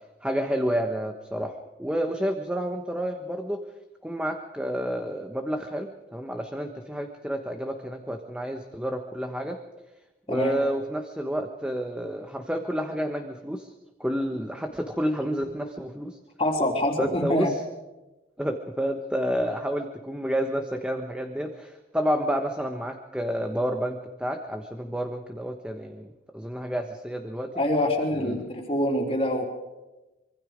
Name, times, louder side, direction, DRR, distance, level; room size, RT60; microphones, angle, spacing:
voice 1, 0.2-3.6 4.0-9.6 10.3-13.7 14.0-16.2 17.0-17.6 18.4-27.5 28.2-28.5, equal, 5° right, 4 dB, 1.2 m, -30 dB
voice 2, 10.3-10.6 16.4-17.5 27.5-29.4, left 1 dB, 35° left, 1 dB, 3.3 m, -25 dB
25.0 x 24.5 x 5.1 m, 1.1 s
head